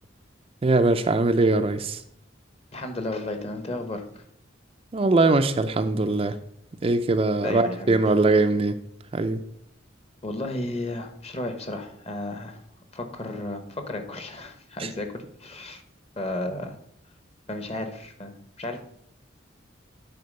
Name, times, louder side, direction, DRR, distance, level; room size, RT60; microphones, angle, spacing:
voice 1, 0.6-2.0 4.9-6.4 6.8-8.8 9.1-9.4 14.8-14.9, right 2 dB, 30° right, 0.4 m, -21 dB
voice 2, 2.7-4.2 6.9-7.0 7.4-8.0 10.2-12.6 12.9-15.8 16.2-16.7 17.5-18.8, left 2 dB, 30° left, 1.0 m, -33 dB
9.4 x 4.4 x 5.3 m
head